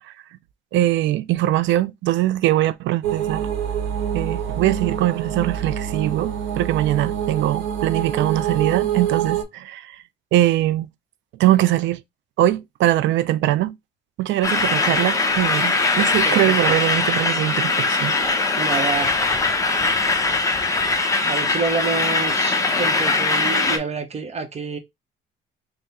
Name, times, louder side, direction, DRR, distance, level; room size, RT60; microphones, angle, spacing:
voice 1, 0.7-3.5 4.1-9.9 10.3-10.9 11.4-12.0 12.4-13.7 14.2-18.1, right 14 dB, 65° right, 0.4 m, -21 dB
sound 1, 3.0-9.4, right 9 dB, 80° right, 1.0 m, -26 dB
sound 2, 14.4-23.8, left 3 dB, 15° left, 0.7 m, -21 dB
voice 2, 16.2-16.8 18.5-19.1 21.3-24.8, right 4 dB, 30° right, 0.8 m, -28 dB
3.5 x 2.1 x 4.1 m
cardioid pair, 105°, 21 cm